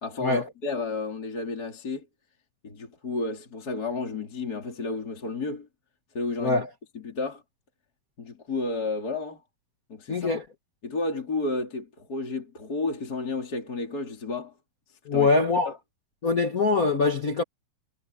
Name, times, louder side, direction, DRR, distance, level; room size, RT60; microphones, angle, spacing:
voice 1, 0.0-2.1 2.6-5.7 6.1-6.6 7.0-7.4 8.2-9.4 9.9-10.4 10.8-14.5 15.1-15.3 15.7-15.8, left 3 dB, 30° left, 3.8 m, -31 dB
voice 2, 10.1-10.4 15.0-15.7 16.2-17.4, left 3 dB, 70° left, 0.8 m, -23 dB
omnidirectional pair, 3.8 m